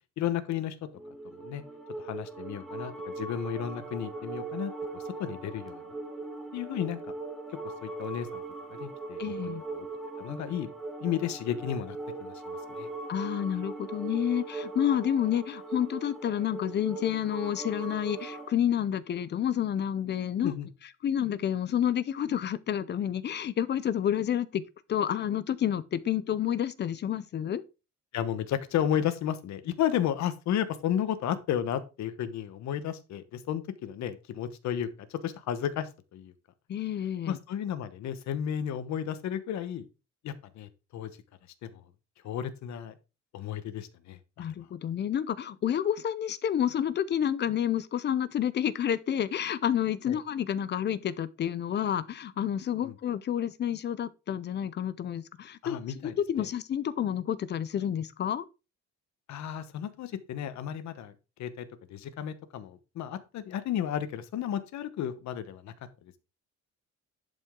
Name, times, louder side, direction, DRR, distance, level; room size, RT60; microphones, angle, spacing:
voice 1, 0.2-0.7 1.4-1.6 2.0-5.8 6.5-7.0 7.8-8.4 8.7-9.9 10.2-10.7 11.0-12.9 20.4-20.7 28.1-36.3 37.3-39.9 40.2-41.1 41.7-41.8 42.2-42.9 43.3-44.5 50.1-50.2 52.8-52.9 55.6-56.5 59.3-61.1 61.4-61.6 61.9-65.7, left 10 dB, 65° left, 1.1 m, -33 dB
sound 1, 0.9-18.5, right 3 dB, ahead, 1.2 m, -40 dB
voice 2, 9.2-9.6 13.1-20.5 21.0-24.6 24.9-27.6 36.7-37.4 44.4-58.4, left 9 dB, 35° left, 0.5 m, -29 dB
11.0 x 5.4 x 3.7 m
cardioid pair, 175°, 30 cm